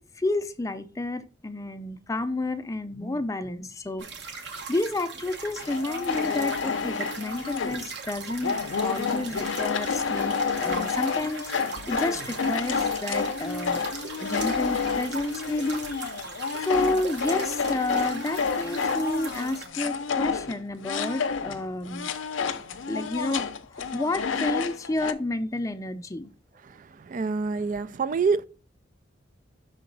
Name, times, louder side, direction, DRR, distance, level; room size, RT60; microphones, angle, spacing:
voice 1, 0.0-13.8 14.2-22.1 22.9-23.5 23.9-26.3, left 2 dB, 15° left, 0.5 m, -31 dB
sound 1, 4.0-19.7, right 4 dB, 60° right, 1.2 m, -39 dB
sound 2, 5.6-7.9 8.4-21.6 21.9-25.1, left 5 dB, 75° left, 0.6 m, -29 dB
voice 2, 27.1-28.4, right 5 dB, 40° right, 0.3 m, -26 dB
5.7 x 3.9 x 5.2 m
head